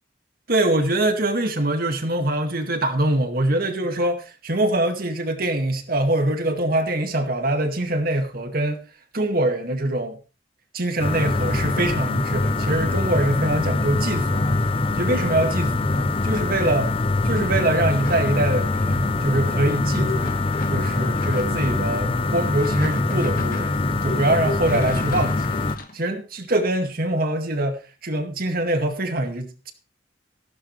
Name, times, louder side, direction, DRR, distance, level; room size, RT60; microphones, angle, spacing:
voice 1, 0.5-8.8 9.1-10.2 10.7-14.4 15.0-16.9 17.2-20.3 20.7-23.8 24.0-25.6 25.9-29.7, right 1 dB, 55° right, 2.0 m, -24 dB
sound 1, 11.0-25.8, left 2 dB, 30° left, 0.7 m, -23 dB
sound 2, 18.0-19.1 20.2-21.7 22.4-23.8 24.4-26.0, left 1 dB, 50° left, 1.9 m, -36 dB
15.5 x 12.0 x 3.3 m
head